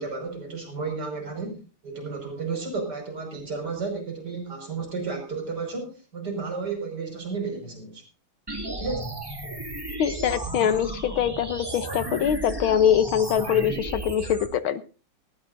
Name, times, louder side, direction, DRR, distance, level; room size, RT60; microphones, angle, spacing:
voice 1, 0.0-8.0 8.8-9.1, right 4 dB, 50° right, 3 dB, 5.9 m, -32 dB
sound 1, 8.5-14.5, right 2 dB, 10° right, 2.1 m, -34 dB
voice 2, 10.0-14.8, left 9 dB, 75° left, 13 dB, 1.7 m, -23 dB
18.5 x 16.5 x 2.6 m, 0.35 s
omnidirectional pair, 2.4 m